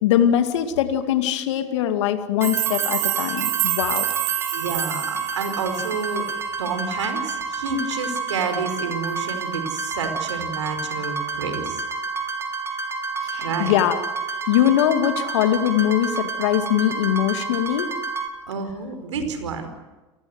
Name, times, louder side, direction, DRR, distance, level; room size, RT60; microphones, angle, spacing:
voice 1, 0.0-4.1 13.2-14.0 14.5-17.9, left 11 dB, 75° left, 7 dB, 2.3 m, -21 dB
sound 1, 2.4-18.3, right 4 dB, 15° right, 5.4 m, -29 dB
sound 2, 2.4-6.3, right 21 dB, 65° right, 2.0 m, -27 dB
voice 2, 4.5-6.3 6.6-11.8 13.4-13.8 18.5-19.7, right 5 dB, 85° right, 8 dB, 5.2 m, -29 dB
30.0 x 20.0 x 8.1 m, 1.1 s
hypercardioid pair, 85°, 15 cm